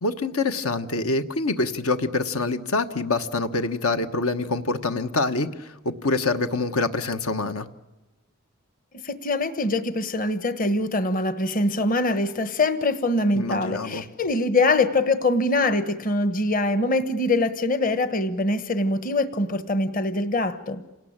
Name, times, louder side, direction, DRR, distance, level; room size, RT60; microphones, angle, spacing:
voice 1, 0.0-7.7 13.3-14.0, left 3 dB, 80° left, 9 dB, 1.3 m, -25 dB
voice 2, 9.0-20.8, left 2 dB, 40° left, 11 dB, 1.2 m, -23 dB
28.0 x 18.5 x 8.8 m, 1.0 s
head